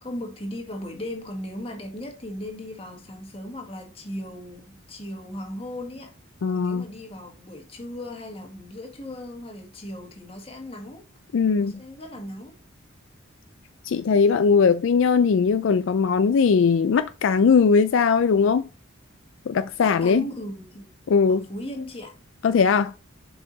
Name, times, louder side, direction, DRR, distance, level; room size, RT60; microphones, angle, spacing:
voice 1, 0.0-6.1 6.5-11.1 11.6-12.6 14.1-14.2 19.8-20.9 21.3-22.1, left 1 dB, 25° left, 1.6 m, -37 dB
voice 2, 6.4-6.8 11.3-11.7 13.8-18.6 19.5-20.2 21.1-21.4 22.4-22.9, left 5 dB, 65° left, 0.4 m, -19 dB
7.1 x 4.8 x 3.9 m
head